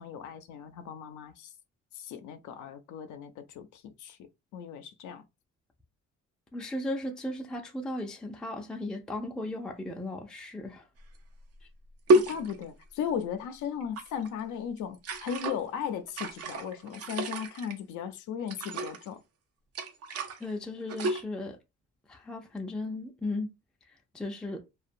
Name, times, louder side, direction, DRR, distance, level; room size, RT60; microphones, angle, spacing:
voice 1, 0.0-1.5 1.9-4.2 4.5-5.2 12.1-19.2, left 8 dB, 85° left, 0.5 m, -37 dB
voice 2, 6.5-10.9 20.4-21.6 22.1-23.5 23.9-24.6, left 2 dB, 5° left, 0.4 m, -36 dB
sound 1, 11.1-11.2 12.1-12.8 13.8-14.3 14.9-15.6 16.1-17.7 18.5-19.1 19.7-20.4 20.8-21.2, right 2 dB, 55° right, 0.6 m, -29 dB
2.4 x 2.2 x 2.5 m
cardioid pair, 90°, 30 cm